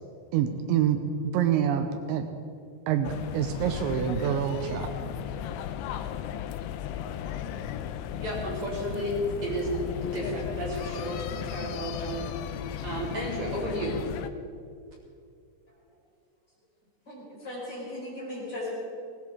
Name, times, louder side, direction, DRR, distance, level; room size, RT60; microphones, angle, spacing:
voice 1, 0.3-1.0 1.3-2.3 2.9-4.9, right 9 dB, 80° right, 7 dB, 3.0 m, -26 dB
sound 1, 3.0-14.3, left 9 dB, 85° left, 3.0 m, -35 dB
voice 2, 8.2-12.3 12.8-14.0, equal, 40° right, -6 dB, 4.2 m, -32 dB
voice 3, 17.1-18.7, left 1 dB, 25° left, -6 dB, 5.1 m, -37 dB
19.0 x 18.5 x 3.7 m, 2.3 s
omnidirectional pair, 5.3 m